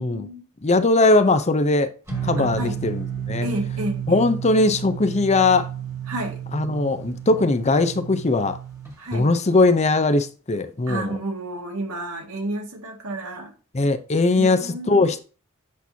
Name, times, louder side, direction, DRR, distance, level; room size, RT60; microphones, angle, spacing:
voice 1, 0.0-0.4 2.4-2.8 3.4-4.3 6.1-6.4 9.0-9.3 10.9-13.5 14.4-15.1, right 1 dB, 80° right, 2.0 m, -31 dB
voice 2, 0.6-1.9 2.2-3.5 4.1-5.7 6.5-8.6 9.1-11.1 13.7-15.2, left 2 dB, 30° left, 0.6 m, -20 dB
sound 1, 2.1-8.9, right 8 dB, 15° right, 1.7 m, -32 dB
8.3 x 6.0 x 2.8 m
head